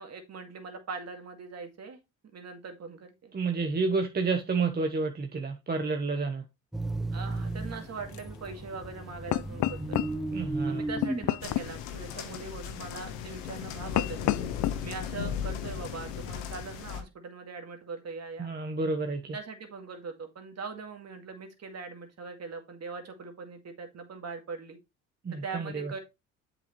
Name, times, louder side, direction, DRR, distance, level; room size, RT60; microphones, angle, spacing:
voice 1, 0.0-2.0 2.3-3.3 7.1-10.0 10.7-14.4 14.8-18.5 19.3-24.8 25.4-26.0, right 4 dB, 45° right, 2.2 m, -41 dB
voice 2, 3.3-6.4 10.3-10.8 18.4-19.3 25.2-25.9, right 4 dB, 25° right, 1.1 m, -30 dB
sound 1, 6.7-11.7, right 2 dB, ahead, 0.6 m, -35 dB
sound 2, 7.3-15.9, left 15 dB, 55° left, 0.5 m, -35 dB
sound 3, 11.4-17.0, left 8 dB, 85° left, 1.3 m, -37 dB
7.6 x 5.9 x 3.2 m
supercardioid pair, 70°, 37 cm